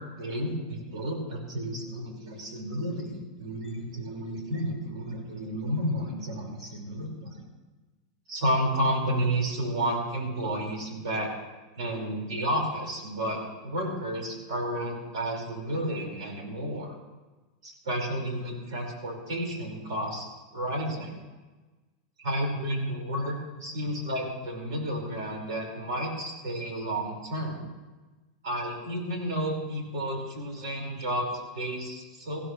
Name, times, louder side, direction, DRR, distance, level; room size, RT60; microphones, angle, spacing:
voice 1, 0.0-7.4 8.3-11.3 11.8-16.9 17.6-20.3 20.5-21.2 22.2-27.6 28.4-32.4, right 1 dB, 80° right, 1 dB, 5.1 m, -31 dB
21.0 x 15.5 x 3.2 m, 1.2 s
supercardioid pair, 175°, 3 cm